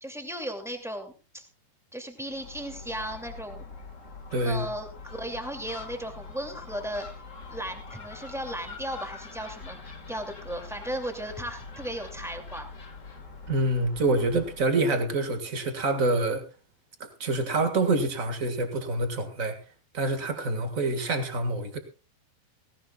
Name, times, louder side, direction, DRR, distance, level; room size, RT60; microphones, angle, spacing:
voice 1, 0.0-1.4 1.9-3.6 4.4-7.0 7.5-9.8 10.1-12.7, right 1 dB, ahead, 4 dB, 1.3 m, -36 dB
Gull seagull, 2.3-14.7, left 4 dB, 85° left, 0.6 m, -44 dB
voice 2, 4.3-4.7 13.5-16.4 17.0-19.6 19.9-21.8, right 2 dB, 55° right, 7 dB, 0.9 m, -26 dB
18.0 x 17.5 x 2.4 m, 0.31 s
omnidirectional pair, 4.6 m